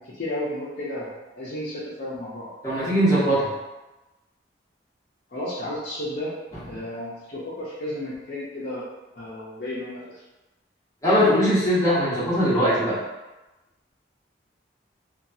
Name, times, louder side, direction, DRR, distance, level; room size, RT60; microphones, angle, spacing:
voice 1, 0.0-2.5 5.3-6.3 6.6-8.8 9.2-10.2, left 1 dB, 50° left, -8 dB, 0.6 m, -33 dB
voice 2, 2.6-3.5 11.0-13.0, equal, 15° left, -11 dB, 1.0 m, -20 dB
2.9 x 2.2 x 2.7 m, 1.1 s
head